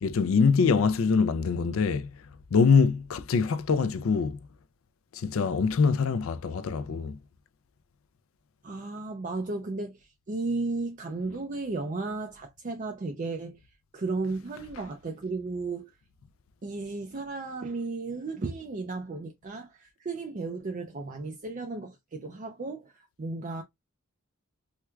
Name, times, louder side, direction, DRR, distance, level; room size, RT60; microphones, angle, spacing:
voice 1, 0.0-2.1 2.5-4.4 5.1-7.2, left 5 dB, 65° left, 0.4 m, -24 dB
voice 2, 8.6-13.6 13.9-15.9 16.6-23.6, right 3 dB, 35° right, 0.4 m, -34 dB
4.5 x 2.3 x 2.2 m
head